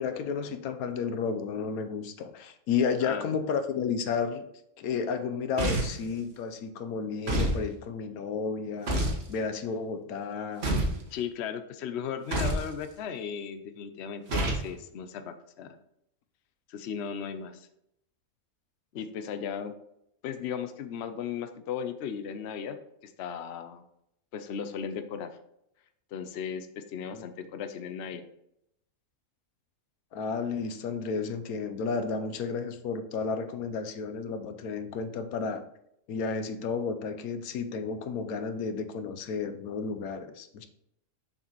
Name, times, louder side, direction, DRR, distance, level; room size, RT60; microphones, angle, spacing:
voice 1, 0.0-4.5 4.8-8.9 9.3-10.7 27.1-27.3 30.1-35.6 36.1-40.7, left 5 dB, 90° left, 8 dB, 1.2 m, -32 dB
sound 1, 5.6-6.1 7.3-7.6 8.9-9.2 10.6-11.0 12.3-12.7 14.3-14.7, right 1 dB, 50° right, 1.5 m, -27 dB
voice 2, 11.1-15.8 16.7-17.7 18.9-19.7 20.2-22.8 23.0-23.8 24.3-25.3 26.1-28.3, left 7 dB, 60° left, 8 dB, 0.8 m, -36 dB
6.7 x 5.8 x 3.0 m, 0.77 s
omnidirectional pair, 1.5 m